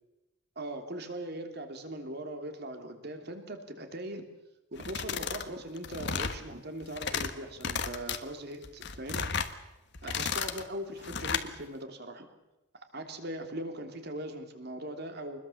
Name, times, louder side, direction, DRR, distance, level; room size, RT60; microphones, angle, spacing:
voice 1, 0.6-4.3 4.7-9.4 10.0-12.3 12.9-15.4, right 1 dB, 50° right, 6 dB, 3.0 m, -40 dB
sound 1, 4.8-5.5 5.8-6.4 6.8-7.3 7.6-8.2 8.6-9.5 9.9-10.6 11.0-11.5, left 6 dB, 55° left, 1.5 m, -33 dB
25.5 x 21.0 x 7.2 m, 0.97 s
head